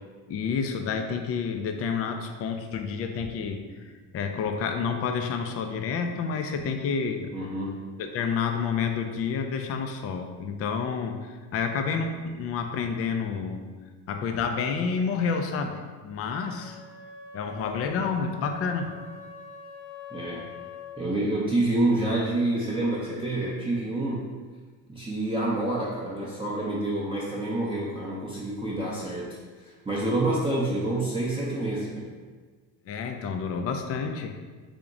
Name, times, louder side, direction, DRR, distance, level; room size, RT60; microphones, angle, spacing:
voice 1, 0.3-3.7 4.1-7.3 8.1-13.7 14.1-16.8 17.3-19.0 32.9-34.3, left 5 dB, 30° left, 5 dB, 0.4 m, -29 dB
voice 2, 7.3-7.8 20.1-20.4 21.0-24.3 24.9-29.3 29.6-32.1, right 2 dB, 10° right, -7 dB, 0.6 m, -28 dB
Wind instrument woodwind instrument, 16.6-21.1, left 4 dB, 50° left, 0.9 m, -44 dB
3.6 x 2.9 x 3.7 m, 1.4 s
supercardioid pair, 80°, 48 cm